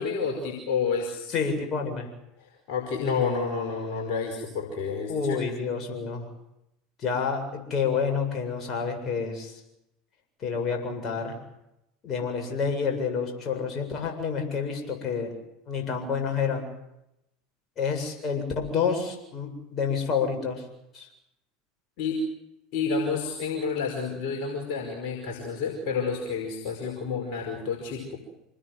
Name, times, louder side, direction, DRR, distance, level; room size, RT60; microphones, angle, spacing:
voice 1, 0.0-1.4 2.4-5.4 22.0-22.2 22.7-28.2, left 5 dB, 55° left, 1 dB, 5.1 m, -30 dB
voice 2, 1.3-2.1 5.1-6.3 7.0-9.5 10.4-11.4 12.0-15.4 15.7-16.7 17.8-20.6 20.9-21.1, left 5 dB, 35° left, 3 dB, 7.7 m, -28 dB
27.0 x 20.5 x 7.8 m, 0.84 s
figure-of-eight pair, 75°, 0 cm